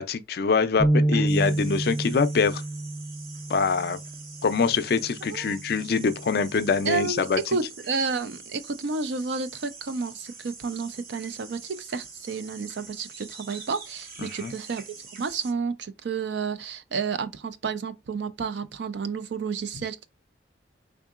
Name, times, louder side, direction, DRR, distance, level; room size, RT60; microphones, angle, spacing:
voice 1, 0.0-2.6 3.5-4.0 4.4-7.4 14.2-14.5, left 5 dB, 55° left, 0.4 m, -24 dB
sound 1, 0.8-7.0, right 1 dB, ahead, 0.5 m, -29 dB
sound 2, 1.3-15.5, right 4 dB, 50° right, 0.8 m, -45 dB
voice 2, 6.8-20.1, right 5 dB, 65° right, 0.4 m, -31 dB
3.6 x 3.6 x 2.4 m
head